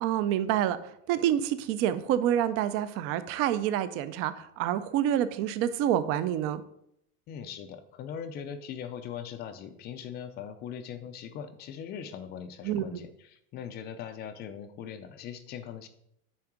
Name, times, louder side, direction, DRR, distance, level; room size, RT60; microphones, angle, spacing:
voice 1, 0.0-6.6 12.6-13.0, right 11 dB, 35° right, 13 dB, 0.4 m, -28 dB
voice 2, 7.3-15.9, left 8 dB, 25° left, 9 dB, 0.4 m, -40 dB
8.6 x 3.5 x 5.9 m, 0.74 s
supercardioid pair, 160°, 42 cm